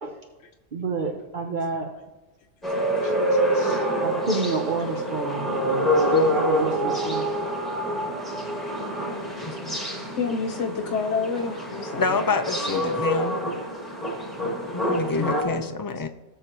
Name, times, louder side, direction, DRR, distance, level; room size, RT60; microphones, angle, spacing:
voice 1, 0.7-2.0 4.0-7.4, right 4 dB, 45° right, 2 dB, 0.9 m, -30 dB
sound 1, 2.6-15.4, equal, ahead, 1.8 m, -26 dB
voice 2, 3.0-3.8 6.9-7.0 9.6-9.7 10.2-12.2 15.1-15.7, left 5 dB, 85° left, 3 dB, 1.1 m, -30 dB
voice 3, 9.4-9.8 12.0-13.4 14.7-16.1, left 4 dB, 25° left, 8 dB, 0.5 m, -27 dB
18.5 x 6.7 x 3.0 m, 1.2 s
omnidirectional pair, 1.2 m